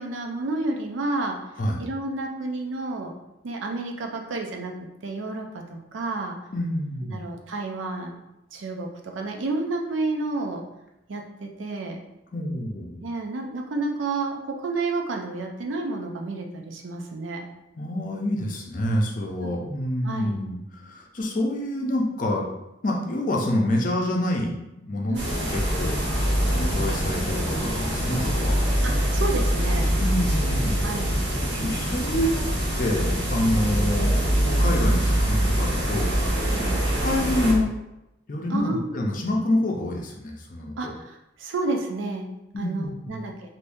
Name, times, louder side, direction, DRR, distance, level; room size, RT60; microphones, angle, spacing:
voice 1, 0.0-1.4 1.8-3.1 3.4-4.7 5.0-6.4 7.1-8.2 8.5-10.6 11.1-12.0 13.0-17.5 19.4-19.5 20.0-20.4 25.1-25.3 28.8-29.9 30.8-31.1 36.5-36.8 38.5-38.9 40.8-42.3 42.6-43.3, right 3 dB, 80° right, 2 dB, 0.5 m, -30 dB
voice 2, 6.5-7.2 12.3-13.0 17.8-22.5 22.8-26.0 26.5-28.6 30.0-30.9 31.6-32.4 32.8-34.1 34.4-36.3 36.7-37.7 38.3-40.7 42.5-43.2, left 1 dB, 45° left, -1 dB, 0.5 m, -27 dB
sound 1, 25.1-37.5, equal, 60° right, 0.9 m, -24 dB
3.5 x 2.7 x 2.6 m, 0.91 s
head